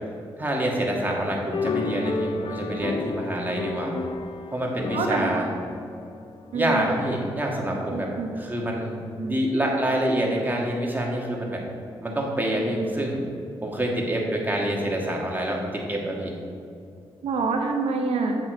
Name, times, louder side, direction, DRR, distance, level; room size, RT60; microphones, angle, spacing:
voice 1, 0.4-3.9 4.5-5.5 6.5-11.6 12.0-13.2 13.6-16.4, right 1 dB, 20° right, -1 dB, 1.9 m, -27 dB
sound 1, 1.5-7.1, left 3 dB, 55° left, 0.6 m, -32 dB
voice 2, 4.9-5.4 6.5-6.9 7.9-8.3 9.2-9.3 12.8-12.9 17.2-18.4, right 4 dB, 80° right, 3 dB, 0.8 m, -26 dB
7.6 x 6.1 x 4.6 m, 2.5 s
cardioid pair, 60°, 10 cm